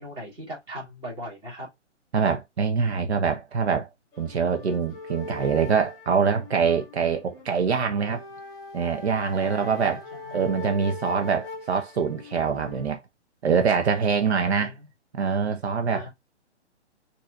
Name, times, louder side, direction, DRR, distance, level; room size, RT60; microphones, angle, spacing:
voice 1, 0.0-1.7 9.4-10.4 14.4-14.9 15.9-16.1, equal, 15° right, 1.4 m, -39 dB
voice 2, 2.1-3.9 4.2-8.2 8.7-10.0 10.3-13.0 13.4-14.7 15.1-16.1, right 6 dB, 65° right, 0.7 m, -24 dB
sound 1, 4.1-12.9, left 3 dB, 10° left, 1.4 m, -41 dB
4.0 x 2.7 x 2.2 m
hypercardioid pair, 135°, 35 cm